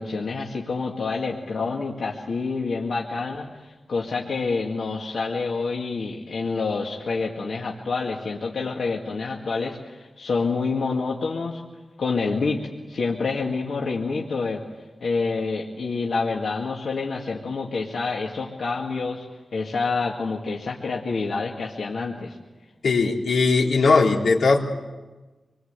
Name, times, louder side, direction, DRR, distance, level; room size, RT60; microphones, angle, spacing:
voice 1, 0.0-11.6 12.0-14.6 15.0-19.3 19.5-22.4, left 4 dB, 70° left, -2 dB, 2.1 m, -27 dB
voice 2, 22.8-24.6, left 4 dB, 90° left, -1 dB, 3.6 m, -19 dB
26.5 x 22.0 x 8.3 m, 1.2 s
wide cardioid pair, 165°, 0 cm